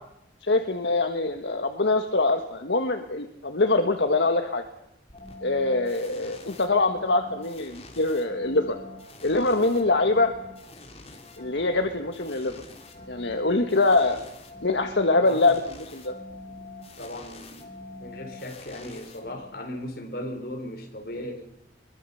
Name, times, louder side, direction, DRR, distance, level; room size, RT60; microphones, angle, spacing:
voice 1, 0.4-4.6 5.4-8.8 9.2-10.3 11.4-12.5 13.1-14.2 14.6-15.6 15.9-16.1, left 2 dB, 75° left, 6 dB, 1.5 m, -24 dB
sound 1, 5.1-19.7, left 2 dB, 35° left, 3.3 m, -45 dB
voice 2, 15.1-15.5 17.0-17.7 18.0-21.4, left 1 dB, 55° left, 3 dB, 4.3 m, -37 dB
23.0 x 22.0 x 6.9 m, 0.80 s
head